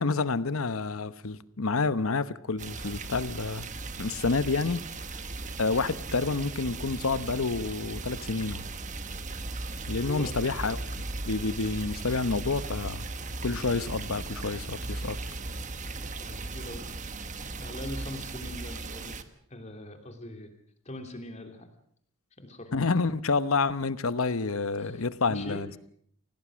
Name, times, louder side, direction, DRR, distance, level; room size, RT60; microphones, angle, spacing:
voice 1, 0.0-3.7 4.0-4.8 5.6-8.6 9.9-10.8 11.2-13.1 13.4-15.2 22.7-25.8, left 4 dB, 80° left, 15 dB, 1.0 m, -29 dB
sound 1, 2.6-19.2, right 3 dB, 35° right, 1.3 m, -37 dB
voice 2, 16.2-16.9 17.6-19.2 19.5-20.5 20.8-21.7 22.4-22.7 24.8-25.7, left 1 dB, 30° left, 6 dB, 3.1 m, -42 dB
26.5 x 18.0 x 6.3 m, 0.65 s
head